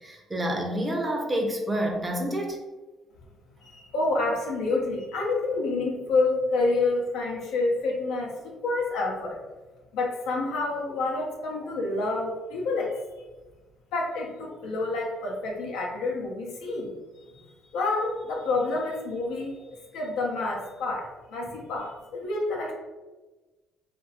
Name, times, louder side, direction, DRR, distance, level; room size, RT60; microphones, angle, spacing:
voice 1, 0.0-2.6, right 1 dB, 20° right, 2 dB, 0.6 m, -28 dB
voice 2, 3.6-9.4 9.9-13.0 13.9-16.9 17.3-19.6 19.9-22.7, left 3 dB, 85° left, -2 dB, 0.6 m, -28 dB
2.9 x 2.5 x 2.7 m, 1.2 s
cardioid pair, 90°, 0 cm